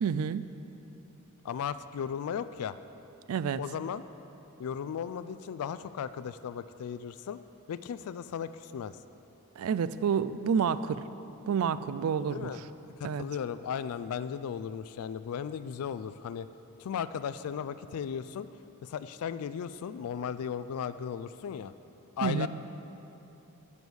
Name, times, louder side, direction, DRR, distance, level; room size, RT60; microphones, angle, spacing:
voice 1, 0.0-0.4 3.3-3.6 9.6-11.0 11.5-12.5 13.0-13.2 22.2-22.5, right 7 dB, 75° right, 14 dB, 0.3 m, -29 dB
voice 2, 1.4-2.8 3.6-4.0 4.6-7.4 7.7-9.0 12.3-16.5 16.8-18.5 18.8-21.7 22.2-22.5, left 7 dB, 80° left, 13 dB, 0.3 m, -36 dB
9.6 x 7.0 x 6.2 m, 3.0 s
head